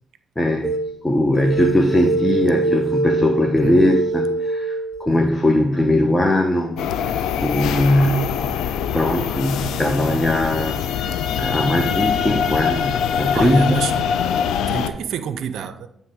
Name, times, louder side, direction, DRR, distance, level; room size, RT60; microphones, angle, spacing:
voice 1, 0.4-0.7 1.0-8.3 8.9-13.8, left 1 dB, 20° left, 1.0 m, -20 dB
sound 1, 0.6-0.9 1.3-5.1, right 3 dB, 15° right, 0.9 m, -23 dB
sound 2, 6.8-14.9, left 8 dB, 80° left, 0.4 m, -23 dB
voice 2, 13.3-13.9 14.7-15.9, right 8 dB, 75° right, 0.4 m, -28 dB
9.7 x 3.3 x 4.8 m
supercardioid pair, 50°, 0 cm